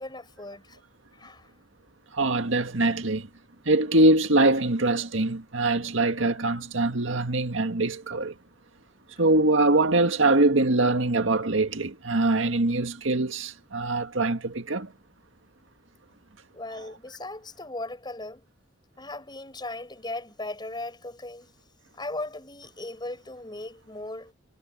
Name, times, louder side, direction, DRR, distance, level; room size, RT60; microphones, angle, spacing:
voice 1, 0.0-1.5 16.5-18.4 19.0-21.5 21.9-24.3, left 2 dB, 25° left, 6.9 m, -38 dB
voice 2, 2.1-3.3 3.7-8.4 9.2-14.9, right 2 dB, 85° right, 1.9 m, -23 dB
head